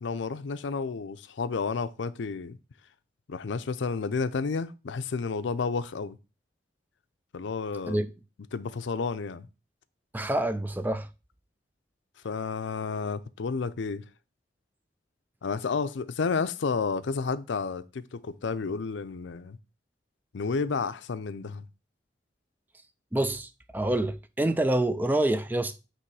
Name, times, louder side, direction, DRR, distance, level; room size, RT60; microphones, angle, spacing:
voice 1, 0.0-2.6 3.3-6.2 7.3-8.0 8.5-9.5 12.2-14.0 15.4-19.6 20.3-21.7, left 4 dB, 80° left, 0.5 m, -31 dB
voice 2, 10.1-11.1 23.1-25.8, right 1 dB, 10° right, 0.3 m, -27 dB
8.6 x 3.1 x 4.7 m
head